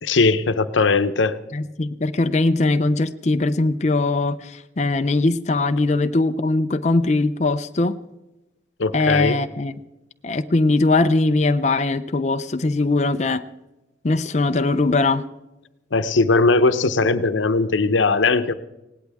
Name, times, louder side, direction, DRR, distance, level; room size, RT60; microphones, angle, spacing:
voice 1, 0.0-1.4 8.8-9.4 15.9-18.5, left 3 dB, 90° left, 12 dB, 0.8 m, -19 dB
voice 2, 1.5-8.0 8.9-9.7 10.2-13.4 14.0-15.3, left 2 dB, 40° left, 8 dB, 0.5 m, -20 dB
19.5 x 17.5 x 3.5 m, 0.99 s
head